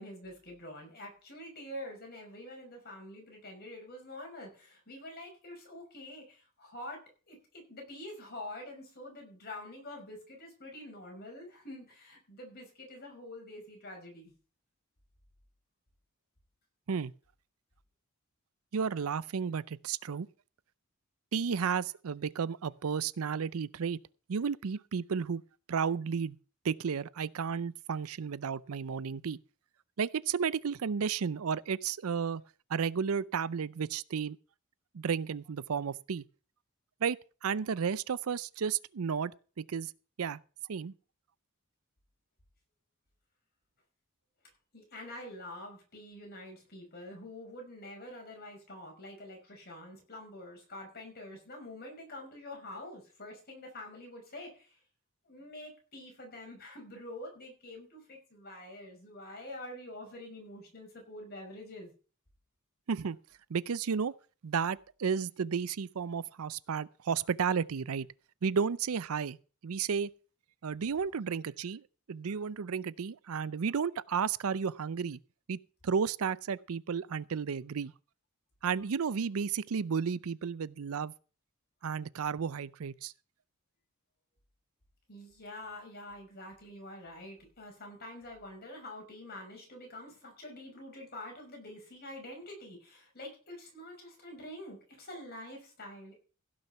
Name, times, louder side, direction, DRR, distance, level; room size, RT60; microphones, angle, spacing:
voice 1, 0.0-14.3 44.7-54.7 55.3-61.9 85.1-96.2, left 1 dB, 45° left, 5.7 m, -46 dB
voice 2, 18.7-20.3 21.3-24.0 24.3-25.4 25.7-26.4 26.6-29.4 30.0-32.4 32.7-34.4 34.9-36.2 37.0-39.3 39.6-39.9 40.2-40.4 40.7-40.9 62.9-63.2 63.5-64.1 64.4-68.1 68.4-69.4 69.6-70.1 70.6-71.8 72.1-75.2 75.5-75.6 75.8-77.9 78.6-81.1 81.8-83.1, right 6 dB, 75° right, 0.5 m, -32 dB
16.0 x 6.4 x 5.8 m
head